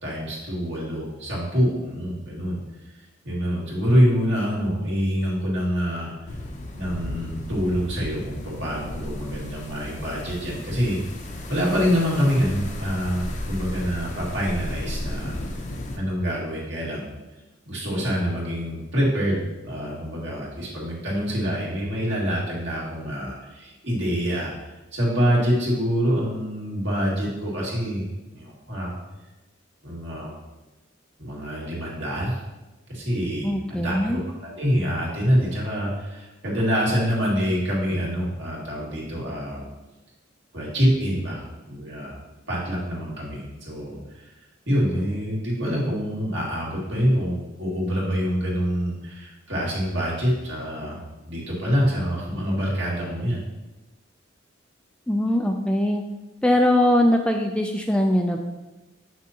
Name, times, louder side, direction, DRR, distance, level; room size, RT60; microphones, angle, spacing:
voice 1, 0.0-2.6 3.2-6.1 6.7-11.0 11.5-15.4 16.0-17.1 17.7-24.5 24.9-28.9 29.8-30.3 31.2-32.4 32.9-39.6 40.5-41.4 41.7-42.2 42.5-44.3 44.7-53.4, equal, 65° right, -5 dB, 2.1 m, -26 dB
sound 1, 6.3-16.0, left 1 dB, 40° left, 0.6 m, -34 dB
voice 2, 33.4-34.2 55.1-56.0 56.4-58.4, left 1 dB, 5° left, 3 dB, 0.3 m, -21 dB
6.8 x 6.0 x 2.9 m, 1.1 s
head